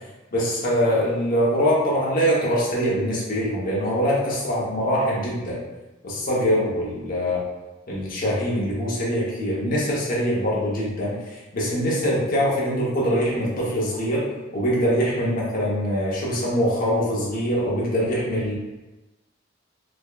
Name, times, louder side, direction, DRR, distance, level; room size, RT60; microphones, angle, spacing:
voice 1, 0.3-5.6 6.0-7.4 7.9-14.3 14.5-18.6, equal, 45° left, -6 dB, 1.0 m, -23 dB
4.9 x 2.4 x 2.4 m, 1.1 s
head